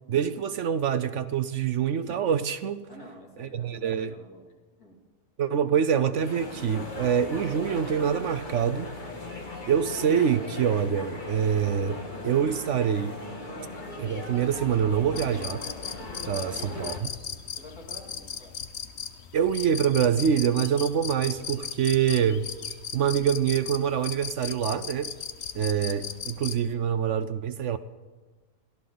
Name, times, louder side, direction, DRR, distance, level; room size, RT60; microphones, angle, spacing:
voice 1, 0.1-2.9 3.4-4.1 5.4-8.9 9.7-13.2 14.0-15.6 16.2-17.1 19.3-22.4 22.9-25.1 25.5-27.8, right 8 dB, 60° right, 12 dB, 0.9 m, -25 dB
voice 2, 2.9-4.5 4.8-5.0 5.6-5.7 17.5-18.6, left 1 dB, 75° left, -1 dB, 3.2 m, -48 dB
sound 1, 6.2-17.0, left 2 dB, 30° left, 1.8 m, -38 dB
sound 2, 15.2-26.6, left 7 dB, 55° left, 1.0 m, -37 dB
22.5 x 14.5 x 3.9 m, 1.3 s
omnidirectional pair, 1.6 m